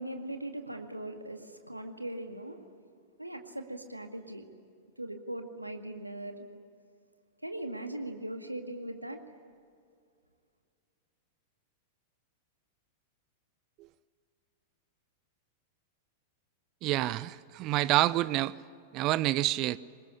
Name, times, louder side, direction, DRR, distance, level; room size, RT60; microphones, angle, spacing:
voice 1, 0.0-2.6 3.2-4.5 5.0-6.5 7.4-9.2, right 1 dB, 90° right, 6 dB, 2.0 m, -39 dB
voice 2, 16.8-18.6 18.9-19.8, right 16 dB, 40° right, 19 dB, 0.6 m, -28 dB
24.5 x 21.0 x 10.0 m, 2.3 s
figure-of-eight pair, 95°, 0 cm